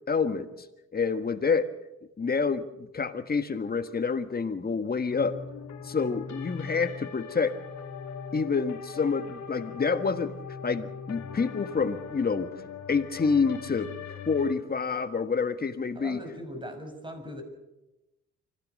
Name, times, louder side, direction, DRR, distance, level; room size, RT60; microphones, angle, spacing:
voice 1, 0.1-0.5 0.9-1.7 2.2-5.4 5.8-7.5 8.3-10.3 10.6-12.5 12.9-16.2, left 5 dB, 30° left, 10 dB, 1.6 m, -28 dB
sound 1, 5.1-14.6, left 6 dB, 65° left, 2.8 m, -40 dB
voice 2, 15.9-17.4, equal, 15° right, 5 dB, 5.9 m, -39 dB
25.0 x 16.5 x 6.6 m, 0.95 s
cardioid pair, 90°, 30 cm